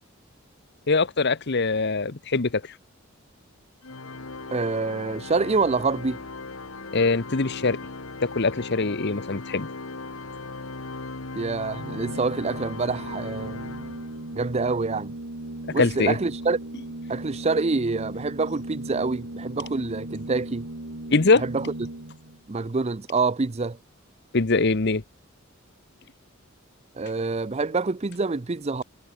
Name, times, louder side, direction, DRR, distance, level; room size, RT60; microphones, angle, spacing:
voice 1, 0.9-2.6 6.9-7.8 8.3-9.7 15.8-16.2 21.1-21.4 24.3-25.0, left 3 dB, 55° left, 1.0 m, -22 dB
Organ, 3.8-14.5, left 3 dB, 80° left, 1.8 m, -38 dB
voice 2, 4.5-6.2 11.4-13.6 14.3-15.1 15.7-16.6 17.1-20.7 21.3-21.7 22.5-23.8 26.9-28.8, right 3 dB, 30° right, 0.6 m, -26 dB
Organ 2, 11.7-22.4, right 1 dB, 65° right, 2.1 m, -37 dB
head